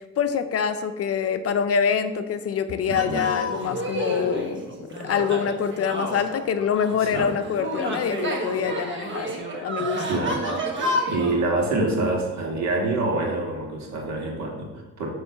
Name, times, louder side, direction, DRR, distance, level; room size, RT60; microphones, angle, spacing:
voice 1, 0.2-10.2, left 7 dB, 50° left, 10 dB, 0.6 m, -25 dB
sound 1, 2.9-11.4, equal, 40° right, 1.3 m, -30 dB
voice 2, 2.9-3.2 7.0-7.3 10.1-10.4 10.8-15.1, right 2 dB, 65° right, 0 dB, 1.8 m, -26 dB
7.9 x 3.2 x 5.7 m, 1.1 s
cardioid pair, 90°, 30 cm